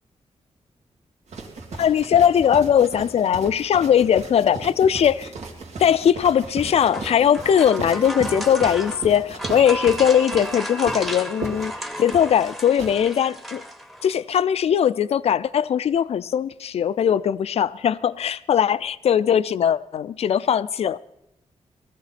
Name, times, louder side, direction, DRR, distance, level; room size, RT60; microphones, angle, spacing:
sound 1, 1.3-12.9, right 4 dB, 85° right, 2.3 m, -36 dB
voice 1, 1.8-5.3 5.8-11.7 12.0-13.6 14.0-21.0, left 8 dB, 65° left, 0.4 m, -20 dB
sound 2, 6.5-14.2, equal, ahead, 0.8 m, -34 dB
sound 3, 9.6-13.1, right 3 dB, 70° right, 1.5 m, -42 dB
18.5 x 14.0 x 4.2 m
wide cardioid pair, 155°, 11 cm